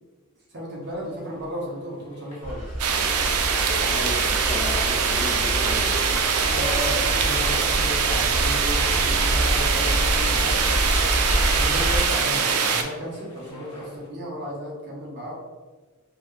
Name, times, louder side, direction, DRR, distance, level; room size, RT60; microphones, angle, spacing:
voice 1, 0.5-2.7 6.5-10.7 11.2-15.3, equal, 50° right, -4 dB, 1.2 m, -34 dB
sound 1, 0.8-14.1, left 1 dB, 85° left, 1.0 m, -44 dB
sound 2, 2.4-12.0, equal, 10° right, 1.4 m, -27 dB
sound 3, 2.8-12.8, right 6 dB, 90° right, 0.5 m, -23 dB
voice 2, 3.6-6.2, left 1 dB, 30° left, -4 dB, 0.9 m, -34 dB
4.3 x 2.7 x 3.3 m, 1.3 s
head